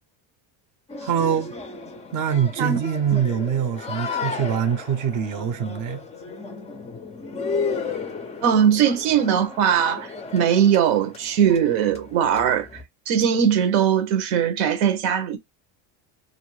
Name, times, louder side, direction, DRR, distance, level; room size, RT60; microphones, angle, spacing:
sound 1, 0.9-12.8, left 4 dB, 15° left, 0.3 m, -34 dB
voice 1, 1.0-1.5 2.1-6.0, right 8 dB, 40° right, 0.6 m, -24 dB
voice 2, 8.4-12.7 13.1-15.4, right 8 dB, 80° right, 0.9 m, -20 dB
2.5 x 2.0 x 3.1 m
supercardioid pair, 105°, 50 cm